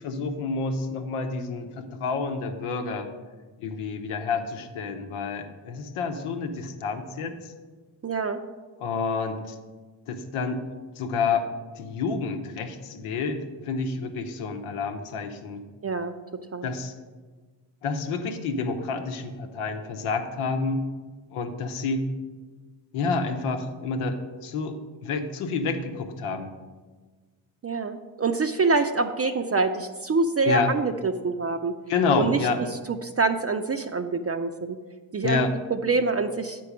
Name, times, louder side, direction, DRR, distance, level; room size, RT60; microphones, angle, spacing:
voice 1, 0.0-3.1 3.6-7.5 8.8-9.6 10.1-10.6 11.0-11.5 11.7-15.6 16.6-16.9 17.8-20.9 21.3-22.0 22.9-26.5 30.5-30.7 31.9-32.6 35.2-35.5, left 4 dB, 85° left, 5 dB, 1.0 m, -29 dB
voice 2, 8.0-8.4 15.8-16.2 16.5-16.7 27.6-31.7 32.2-32.4 32.9-34.8 35.1-35.4 35.7-36.6, right 4 dB, 30° right, 6 dB, 0.5 m, -25 dB
8.5 x 4.6 x 6.0 m, 1.4 s
supercardioid pair, 50°, 49 cm